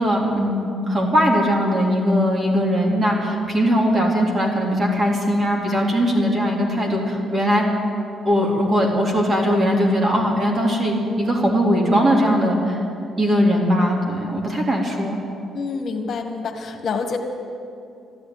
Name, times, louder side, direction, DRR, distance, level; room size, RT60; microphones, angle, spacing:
voice 1, 0.0-7.6 8.2-12.8 13.2-15.2, equal, 35° right, -1 dB, 3.3 m, -20 dB
voice 2, 15.5-17.2, left 5 dB, 55° left, 3 dB, 1.6 m, -27 dB
13.5 x 11.0 x 9.5 m, 2.5 s
cardioid pair, 90°, 0 cm